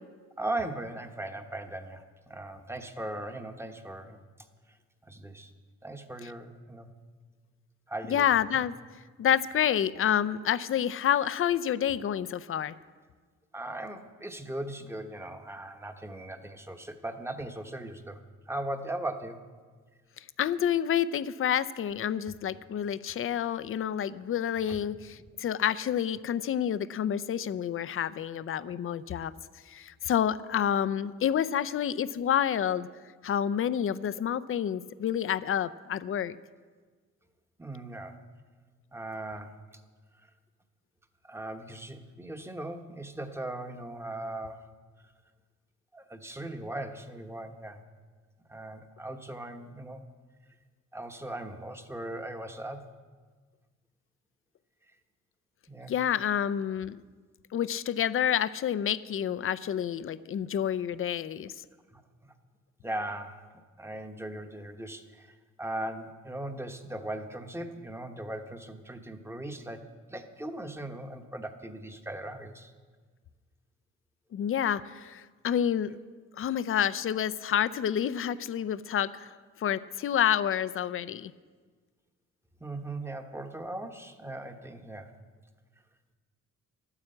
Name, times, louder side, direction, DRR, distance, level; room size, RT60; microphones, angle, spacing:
voice 1, 0.4-4.2 5.1-5.5 5.8-6.9 7.9-8.3 8.5-8.6 13.5-18.2 18.5-19.4 22.3-22.4 24.7-24.8 37.6-38.2 38.9-39.6 41.2-44.7 45.9-47.8 48.5-50.0 50.9-52.9 55.7-55.9 61.9-62.3 62.8-63.5 63.8-69.8 70.1-72.7 82.6-85.1, right 1 dB, 10° right, 6 dB, 1.1 m, -38 dB
voice 2, 8.1-8.8 9.2-12.7 20.2-29.3 29.7-32.9 33.2-36.4 55.9-57.0 57.5-61.5 74.3-76.0 76.4-79.3 79.6-81.3, left 9 dB, 45° left, 15 dB, 0.5 m, -28 dB
12.0 x 9.8 x 7.8 m, 1.5 s
cardioid pair, 90°, 30 cm